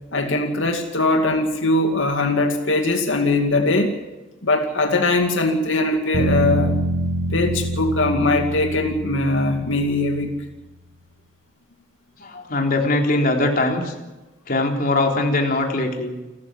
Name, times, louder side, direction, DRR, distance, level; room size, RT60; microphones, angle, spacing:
voice 1, 0.1-3.9 4.4-6.8 7.3-10.3, left 2 dB, 85° left, 4 dB, 2.5 m, -21 dB
sound 1, 6.1-10.2, right 1 dB, 80° right, 5.2 m, -25 dB
voice 2, 12.2-13.9 14.5-16.1, left 2 dB, 50° left, 2 dB, 3.7 m, -21 dB
29.0 x 13.5 x 7.5 m, 1.1 s
head